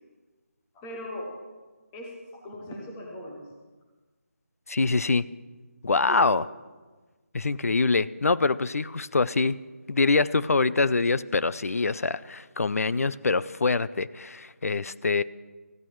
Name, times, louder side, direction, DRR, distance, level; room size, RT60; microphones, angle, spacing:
voice 1, 0.7-1.4 1.9-3.5 6.1-6.3, left 1 dB, 5° left, 0 dB, 0.4 m, -39 dB
voice 2, 4.7-5.3 5.8-6.4 7.3-9.6 9.9-15.2, left 3 dB, 75° left, 17 dB, 0.5 m, -24 dB
18.5 x 14.5 x 3.1 m, 1.3 s
figure-of-eight pair, 175°, 8 cm